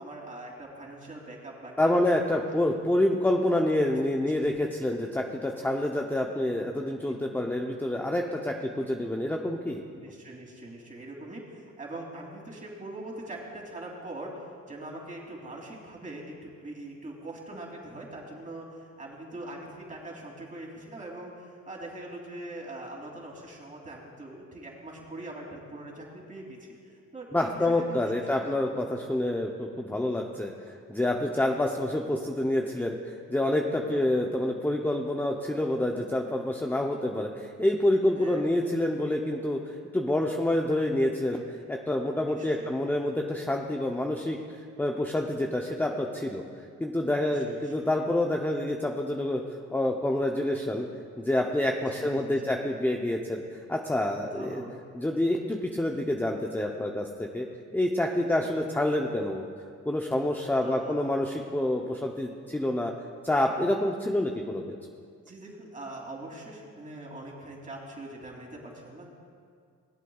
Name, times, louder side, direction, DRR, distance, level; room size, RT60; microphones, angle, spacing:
voice 1, 0.0-2.0 3.6-3.7 4.3-4.5 7.0-7.1 7.4-7.6 9.9-26.7 27.1-28.5 31.4-31.5 33.9-34.1 38.2-38.5 42.3-42.8 47.2-47.9 51.9-52.6 54.3-54.8 58.4-58.5 60.6-61.0 65.2-69.1, right 2 dB, 25° right, -2 dB, 3.0 m, -42 dB
voice 2, 1.8-9.8 27.3-30.5 30.9-41.4 41.7-46.4 46.8-49.4 49.7-50.9 51.2-53.4 53.7-54.6 54.9-57.5 57.7-59.5 59.9-62.9 63.2-64.6, left 1 dB, 5° left, 1 dB, 0.7 m, -27 dB
20.5 x 8.1 x 2.4 m, 2.2 s
cardioid pair, 90°, 30 cm